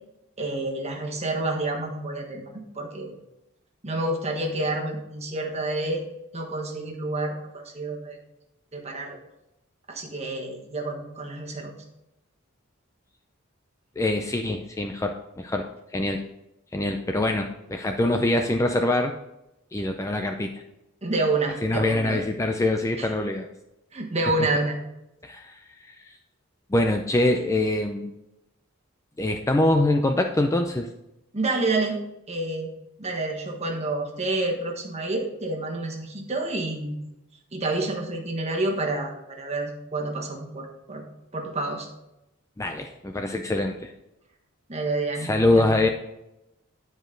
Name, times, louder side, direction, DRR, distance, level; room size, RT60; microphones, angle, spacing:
voice 1, 0.4-2.4 2.7-3.2 3.8-6.0 6.3-8.2 8.7-9.2 9.9-11.7 21.0-22.2 23.0-23.1 23.9-24.8 31.3-32.0 32.3-32.7 33.0-37.0 37.5-41.0 41.3-41.9 44.7-45.7, right 2 dB, 30° right, 1 dB, 1.4 m, -28 dB
voice 2, 14.0-16.2 16.7-19.1 19.7-20.6 21.6-23.5 25.2-26.1 26.7-28.1 29.2-30.9 42.6-43.9 45.2-45.9, left 2 dB, 15° left, 4 dB, 0.4 m, -24 dB
9.7 x 5.1 x 3.8 m, 0.88 s
head